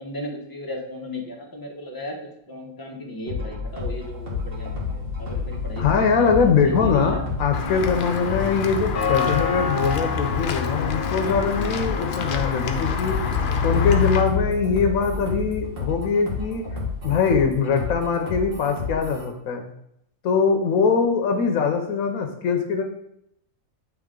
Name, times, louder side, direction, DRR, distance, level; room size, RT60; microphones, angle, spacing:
voice 1, 0.0-2.2 2.5-6.2 6.8-7.2, left 1 dB, 15° left, -1 dB, 1.0 m, -35 dB
sound 1, 3.3-19.3, left 4 dB, 45° right, 1.7 m, -31 dB
sound 2, 3.7-8.3 11.6-16.3 18.4-18.5, left 6 dB, 70° right, 1.7 m, -30 dB
voice 2, 5.8-13.2 13.6-16.6 17.0-19.7 20.2-22.8, left 5 dB, 80° left, 4 dB, 1.1 m, -22 dB
Walk footsteps / Bell, 7.5-14.2, left 5 dB, 55° left, 0.6 m, -27 dB
8.3 x 3.2 x 3.7 m, 0.76 s
omnidirectional pair, 1.5 m